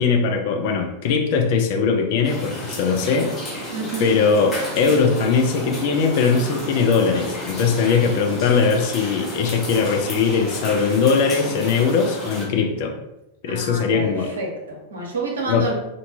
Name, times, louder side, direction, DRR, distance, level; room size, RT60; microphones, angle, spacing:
voice 1, 0.0-3.3 4.0-12.9 13.4-14.3 15.5-15.7, left 5 dB, 50° left, 3 dB, 0.4 m, -20 dB
sound 1, 2.2-12.5, left 1 dB, 20° left, 0.9 m, -32 dB
voice 2, 3.7-4.1 13.5-15.7, right 3 dB, 70° right, -1 dB, 0.7 m, -29 dB
2.6 x 2.2 x 2.7 m, 0.91 s
figure-of-eight pair, 90°, 0 cm